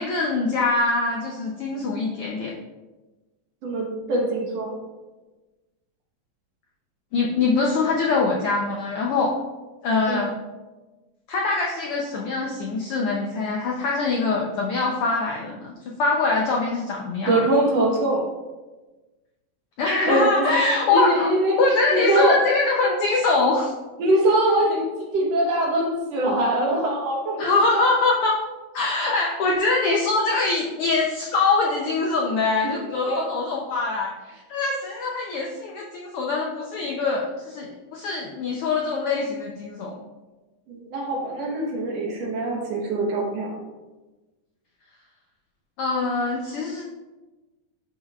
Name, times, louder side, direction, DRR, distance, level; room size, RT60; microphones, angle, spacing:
voice 1, 0.0-2.5 7.1-9.3 9.8-10.3 11.3-17.4 19.8-21.3 21.6-23.7 27.4-28.4 28.7-39.9 45.8-46.9, left 3 dB, 75° left, -1 dB, 1.3 m, -23 dB
voice 2, 3.6-4.8 10.1-10.2 17.3-18.2 20.1-21.6 21.9-22.4 24.0-27.5 27.7-27.8 32.8-33.3 40.7-43.5, right 1 dB, 65° right, -1 dB, 2.2 m, -23 dB
11.5 x 5.4 x 2.4 m, 1.2 s
omnidirectional pair, 3.3 m